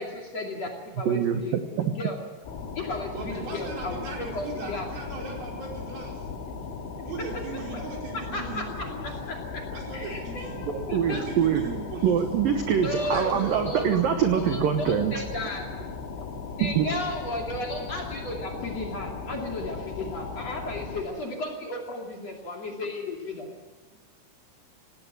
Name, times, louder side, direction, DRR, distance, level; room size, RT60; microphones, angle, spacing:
voice 1, 0.0-2.2 2.7-4.9 7.5-7.8 8.1-9.7 9.9-11.2 12.8-14.0 14.5-15.7 16.6-23.5, left 2 dB, 40° left, 0 dB, 2.9 m, -34 dB
voice 2, 1.1-1.9 10.6-11.6 12.0-15.2 16.6-16.9, right 8 dB, 80° right, 6 dB, 2.0 m, -24 dB
sound 1, 2.4-21.0, left 5 dB, 75° left, 5.0 m, -37 dB
voice 3, 3.1-6.3 7.0-9.1 9.7-10.6 11.0-12.2 13.0-13.6, right 3 dB, 45° right, -1 dB, 6.3 m, -38 dB
18.5 x 18.0 x 9.1 m, 1.2 s
omnidirectional pair, 5.9 m